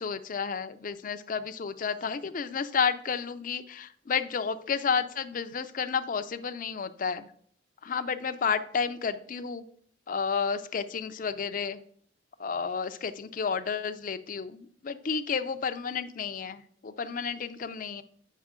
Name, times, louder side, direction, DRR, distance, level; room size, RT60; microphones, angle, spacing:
voice 1, 0.0-7.3 7.8-9.7 10.1-11.8 12.4-18.0, left 6 dB, 50° left, 10 dB, 0.5 m, -31 dB
8.3 x 5.6 x 3.6 m, 0.62 s
head